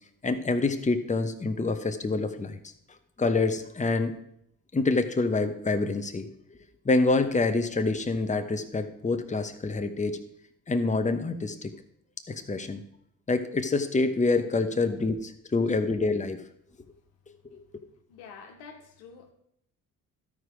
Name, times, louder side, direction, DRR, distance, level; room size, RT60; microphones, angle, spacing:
voice 1, 0.2-2.6 3.2-4.2 4.7-6.3 6.8-10.2 10.7-11.7 12.3-12.8 13.3-16.4 17.5-17.6, left 3 dB, 20° left, 7 dB, 1.0 m, -26 dB
voice 2, 18.1-19.3, left 5 dB, 85° left, 3 dB, 1.3 m, -47 dB
12.5 x 5.0 x 5.0 m, 0.72 s
hypercardioid pair, 50°, 40 cm